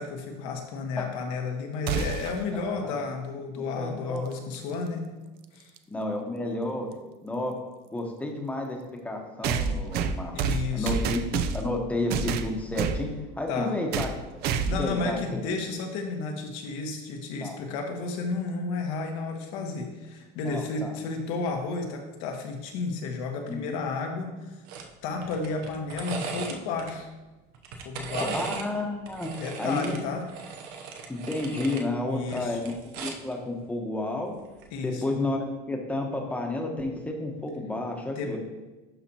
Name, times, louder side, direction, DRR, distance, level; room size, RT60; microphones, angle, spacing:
voice 1, 0.0-5.1 5.5-5.7 10.3-10.9 13.5-13.7 14.7-24.6 25.0-27.1 27.8-28.4 29.4-30.2 32.1-32.6 34.7-35.0 38.1-38.4, left 4 dB, 80° left, 3 dB, 1.3 m, -32 dB
sound 1, 1.9-2.4 4.5-4.6 5.8-5.9 9.4-11.8 12.1-13.0 13.9-14.2 14.4-14.9, right 6 dB, 50° right, 0.5 m, -28 dB
voice 2, 2.5-2.9 3.6-4.3 5.9-6.9 7.2-7.6 7.9-8.8 9.0-10.3 10.7-13.1 13.4-14.1 14.8-15.2 17.4-17.6 20.4-20.9 23.5-23.6 28.3-29.3 29.6-30.0 31.1-34.3 34.8-38.4, left 2 dB, 5° left, 1 dB, 1.0 m, -31 dB
sound 2, 24.7-24.9 25.2-26.9 27.5-28.7 29.1-31.9 32.2-33.3 34.5-34.7, right 5 dB, 75° right, 0.9 m, -37 dB
11.5 x 4.2 x 2.9 m, 1.1 s
cardioid pair, 145°, 21 cm